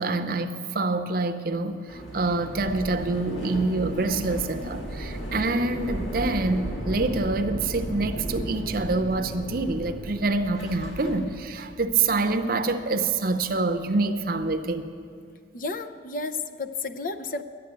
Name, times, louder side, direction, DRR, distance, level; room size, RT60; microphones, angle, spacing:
voice 1, 0.0-14.9, right 3 dB, 50° right, 0.7 m, -26 dB
sound 1, 1.9-14.7, right 1 dB, 85° left, 2.2 m, -36 dB
voice 2, 15.5-17.4, left 3 dB, 45° left, 0.5 m, -32 dB
11.5 x 9.1 x 9.1 m
head